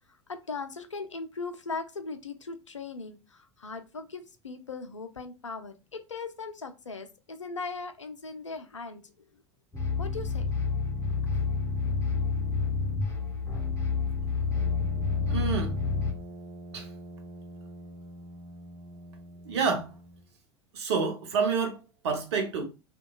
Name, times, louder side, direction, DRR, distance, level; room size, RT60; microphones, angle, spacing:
voice 1, 0.3-9.0 10.0-10.5, left 4 dB, 90° left, 0.4 m, -39 dB
sound 1, 9.7-16.1, left 4 dB, 20° left, 0.8 m, -29 dB
Brass instrument, 14.5-20.4, right 1 dB, 35° right, 0.5 m, -45 dB
voice 2, 15.3-15.7 16.7-16.9 19.5-19.9 20.7-22.6, right 5 dB, 65° right, 0.8 m, -28 dB
2.8 x 2.2 x 2.2 m
figure-of-eight pair, 85°, 15 cm